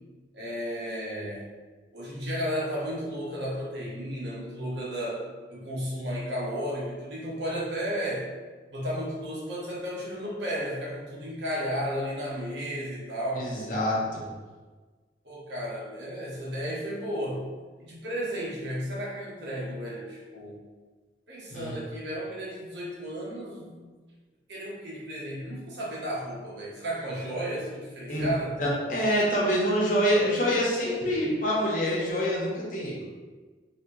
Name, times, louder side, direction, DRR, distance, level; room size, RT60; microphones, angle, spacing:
voice 1, 0.3-1.5 1.9-5.2 5.5-8.3 8.7-13.5 15.2-17.4 17.8-20.6 21.3-23.8 24.5-28.5, equal, 90° right, -6 dB, 1.0 m, -33 dB
voice 2, 13.3-14.2 21.5-21.7 28.1-28.3 28.6-33.0, equal, 50° left, -5 dB, 0.9 m, -26 dB
3.1 x 2.6 x 3.1 m, 1.3 s
head